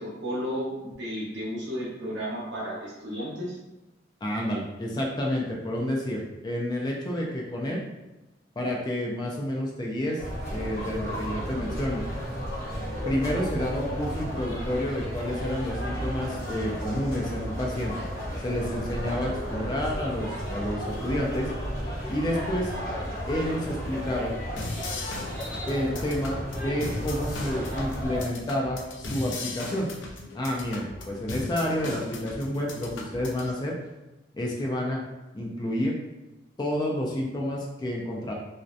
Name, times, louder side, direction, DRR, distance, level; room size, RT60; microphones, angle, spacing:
voice 1, 0.0-3.6, equal, 65° right, -6 dB, 0.8 m, -33 dB
voice 2, 4.2-7.8 8.6-10.2 10.5-12.0 13.1-17.9 18.4-21.5 22.1-22.7 23.3-24.3 25.7-29.9 30.3-33.7 34.3-35.0 35.3-35.9 36.6-38.3, left 1 dB, 20° left, -2 dB, 0.3 m, -29 dB
sound 1, 10.2-28.2, equal, 55° left, 0.9 m, -33 dB
sound 2, 24.6-33.5, left 2 dB, 85° left, 0.5 m, -38 dB
2.6 x 2.1 x 2.4 m, 1.0 s
head